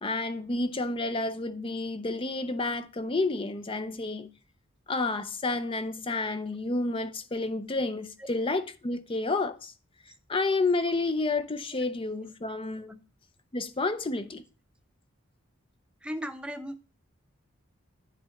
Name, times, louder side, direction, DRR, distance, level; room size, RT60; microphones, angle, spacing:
voice 1, 0.0-4.3 4.9-9.7 10.3-13.0 13.5-14.4, left 3 dB, 25° left, 0.6 m, -30 dB
voice 2, 16.0-16.8, equal, 5° right, 0.8 m, -36 dB
10.0 x 3.7 x 7.1 m
head